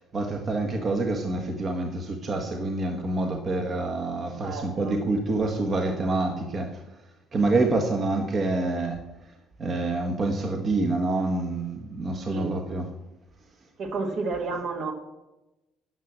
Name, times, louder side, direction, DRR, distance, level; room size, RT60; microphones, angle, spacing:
voice 1, 0.0-6.8 7.3-9.1 9.6-12.9, right 2 dB, 40° right, 3 dB, 1.3 m, -27 dB
voice 2, 4.4-5.0 12.3-12.5 13.8-14.9, right 3 dB, 60° right, 4 dB, 1.8 m, -31 dB
9.6 x 5.9 x 7.4 m, 1.0 s
supercardioid pair, 85°, 0 cm